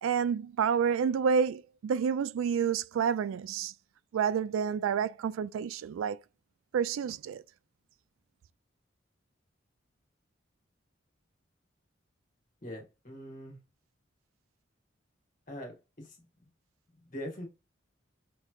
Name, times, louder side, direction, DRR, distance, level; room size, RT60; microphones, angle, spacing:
voice 1, 0.0-3.7 4.1-6.2 6.7-7.4, right 7 dB, 85° right, 0.3 m, -29 dB
voice 2, 12.6-13.6 15.5-16.2 17.1-17.5, equal, 40° left, 1.4 m, -42 dB
5.2 x 3.1 x 2.3 m
head